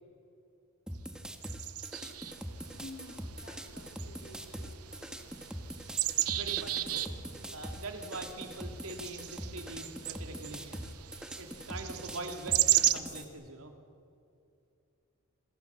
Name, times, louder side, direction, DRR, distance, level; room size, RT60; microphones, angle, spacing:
sound 1, 0.9-13.2, equal, 5° right, 1.5 m, -43 dB
sound 2, 1.4-12.9, right 14 dB, 90° right, 1.1 m, -35 dB
voice 1, 2.7-5.0, left 1 dB, 60° left, 4 dB, 3.2 m, -51 dB
voice 2, 6.3-7.1 7.5-10.9 11.4-13.7, right 2 dB, 70° right, 4 dB, 3.0 m, -43 dB
27.0 x 27.0 x 7.1 m, 2.7 s
head